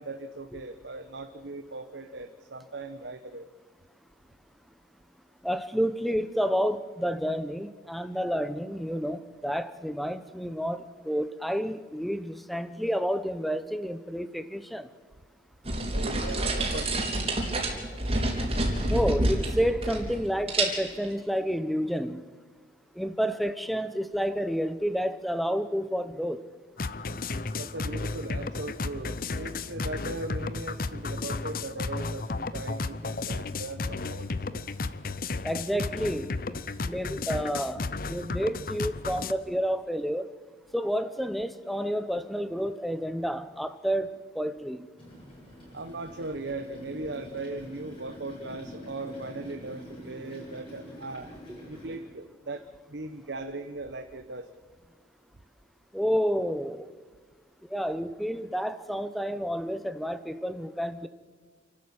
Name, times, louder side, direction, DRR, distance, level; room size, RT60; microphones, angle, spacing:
voice 1, 0.0-3.5 15.9-17.0 27.6-34.2 34.5-34.6 45.7-51.3 51.7-52.6 52.9-54.4, right 2 dB, 75° right, 1.1 m, -38 dB
voice 2, 5.4-14.9 18.9-22.2 23.0-26.4 35.4-36.6 36.8-40.3 40.7-44.9 55.9-56.9 57.7-61.1, equal, ahead, 0.8 m, -30 dB
sound 1, 15.6-20.2 20.5-21.1, right 1 dB, 30° right, 3.9 m, -28 dB
sound 2, 26.8-39.3, left 3 dB, 50° left, 0.7 m, -33 dB
sound 3, 45.0-52.0, equal, 30° left, 7.2 m, -46 dB
28.0 x 12.5 x 8.8 m
head